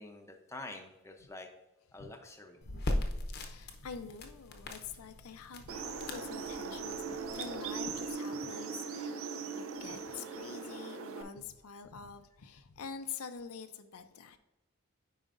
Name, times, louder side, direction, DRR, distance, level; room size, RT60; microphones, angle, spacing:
voice 1, 0.0-1.5 1.9-2.6, left 2 dB, 15° left, 3 dB, 0.6 m, -47 dB
voice 2, 2.6-3.0 3.3-14.4, left 6 dB, 80° left, 9 dB, 0.5 m, -46 dB
sound 1, 2.6-8.1, left 1 dB, 45° left, 0.7 m, -40 dB
sound 2, 5.7-11.2, right 5 dB, 70° right, 0.5 m, -40 dB
8.9 x 5.0 x 2.5 m, 0.99 s
head